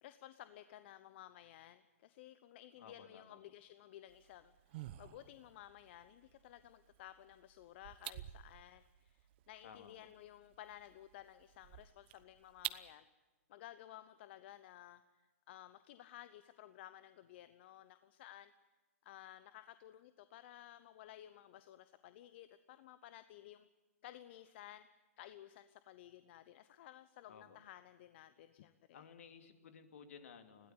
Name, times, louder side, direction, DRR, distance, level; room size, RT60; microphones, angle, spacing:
voice 1, 0.0-13.0 13.5-18.5 19.0-23.7 24.0-29.0, left 13 dB, 50° left, 12 dB, 0.9 m, -56 dB
voice 2, 2.8-3.4 9.6-10.0 27.3-27.6 28.9-30.7, left 6 dB, 65° left, 6 dB, 2.8 m, -56 dB
sound 1, 4.1-12.9, right 15 dB, 45° right, 1.0 m, -51 dB
21.0 x 16.5 x 9.8 m, 1.2 s
hypercardioid pair, 120°, 8 cm